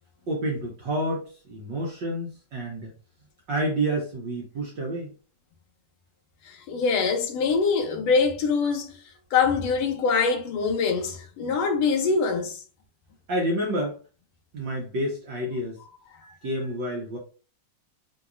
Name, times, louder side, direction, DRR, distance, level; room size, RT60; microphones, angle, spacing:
voice 1, 0.3-2.9 3.5-5.1 13.3-14.0 14.5-15.8 16.4-17.2, right 1 dB, 65° right, 1.2 m, -29 dB
voice 2, 6.5-9.0 9.3-12.6, left 5 dB, 70° left, 1.8 m, -24 dB
5.9 x 2.9 x 2.6 m
omnidirectional pair, 3.4 m